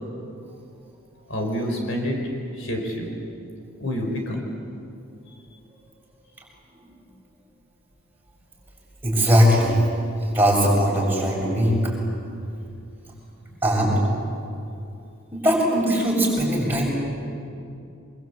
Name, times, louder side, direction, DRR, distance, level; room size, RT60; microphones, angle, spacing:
voice 1, 1.3-2.2 2.5-3.1 3.8-4.4, equal, 65° left, 2 dB, 4.5 m, -27 dB
voice 2, 9.0-9.8 10.3-11.9 13.6-13.9 15.3-16.9, equal, 10° right, -4 dB, 7.1 m, -20 dB
25.0 x 23.5 x 8.4 m, 2.6 s
head